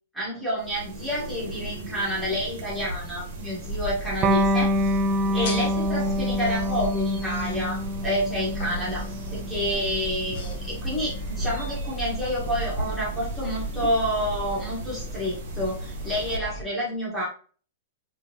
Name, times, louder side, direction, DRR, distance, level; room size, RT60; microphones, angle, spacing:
voice 1, 0.1-5.0 5.3-9.0 9.3-17.3, equal, ahead, -7 dB, 1.6 m, -29 dB
sound 1, 0.6-16.4, right 1 dB, 45° right, 1.5 m, -37 dB
sound 2, 3.6-16.6, right 1 dB, 50° left, 1.1 m, -36 dB
Electric guitar, 4.2-11.4, equal, 20° right, 0.4 m, -27 dB
3.8 x 3.7 x 2.9 m, 0.41 s
supercardioid pair, 170°, 0 cm